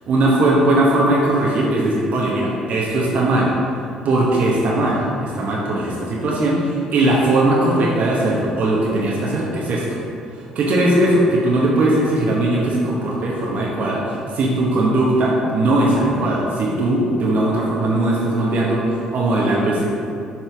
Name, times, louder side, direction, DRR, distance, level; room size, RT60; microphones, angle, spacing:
voice 1, 0.1-3.5 4.0-10.0 10.3-19.9, right 1 dB, 60° right, -4 dB, 1.1 m, -19 dB
7.8 x 4.4 x 3.5 m, 2.5 s
hypercardioid pair, 50°, 3 cm